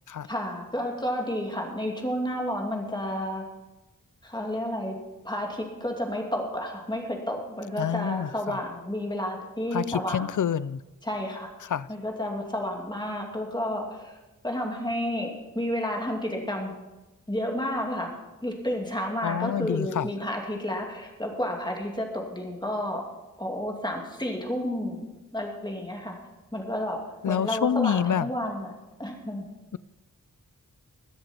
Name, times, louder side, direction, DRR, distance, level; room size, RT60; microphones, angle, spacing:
voice 1, 0.3-3.4 4.2-4.9 5.2-10.3 11.0-11.5 11.9-14.2 14.4-15.3 15.5-16.7 17.3-18.1 18.4-23.0 23.4-26.2 26.5-27.0 27.3-29.4, equal, 15° left, 2.5 m, -31 dB
voice 2, 7.8-8.6 9.7-10.8 11.7-11.9 19.2-20.1 27.2-28.3, left 8 dB, 60° left, 0.5 m, -27 dB
21.0 x 7.8 x 4.4 m
wide cardioid pair, 80°, 34 cm